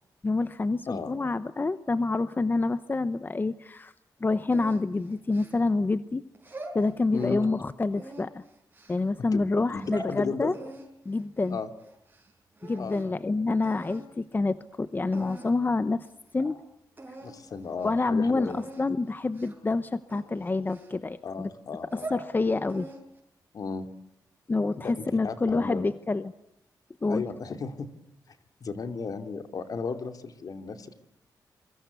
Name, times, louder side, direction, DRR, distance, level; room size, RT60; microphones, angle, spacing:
voice 1, 0.2-3.9 4.2-6.2 6.7-8.4 8.9-10.5 11.0-11.6 12.6-16.1 16.3-16.6 17.8-21.5 21.9-22.9 24.5-26.3 27.0-27.2, left 3 dB, 30° left, 13 dB, 1.0 m, -27 dB
sound 1, 4.5-5.9 6.3-7.5 7.9-9.0 9.6-10.1 10.5-12.3 12.6-13.2 13.6-14.1 14.7-14.8 15.1-15.7 16.0-16.1 16.4-16.5 17.0-17.3 17.7-17.9 18.5-18.8 19.3-19.7 20.1-21.3 21.8-22.3 22.7-23.2, right 2 dB, 25° right, 7.6 m, -43 dB
voice 2, 7.1-7.5 9.3-10.5 11.5-11.7 12.8-13.0 17.2-18.6 21.2-22.1 23.5-23.9 24.8-25.8 27.1-27.9 28.6-31.0, left 5 dB, 60° left, 8 dB, 2.8 m, -35 dB
27.5 x 24.0 x 8.4 m, 0.79 s
cardioid pair, 90°, 7 cm